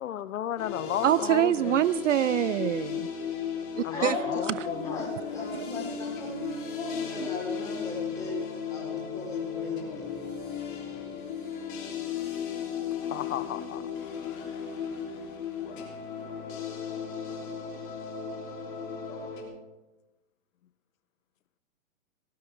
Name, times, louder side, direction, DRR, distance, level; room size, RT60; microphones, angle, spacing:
voice 1, 0.0-1.8 3.8-5.1 13.0-13.8, left 11 dB, 70° left, 16 dB, 0.7 m, -34 dB
sound 1, 0.6-19.4, left 7 dB, 35° left, 3.4 m, -35 dB
voice 2, 1.0-3.1 3.8-4.2 4.5-4.7 5.5-5.6 7.2-7.3, right 11 dB, 60° right, 18 dB, 0.5 m, -25 dB
voice 3, 3.9-10.2, left 2 dB, 10° left, -4 dB, 4.3 m, -37 dB
18.0 x 15.5 x 3.6 m, 1.0 s
hypercardioid pair, 170°, 42 cm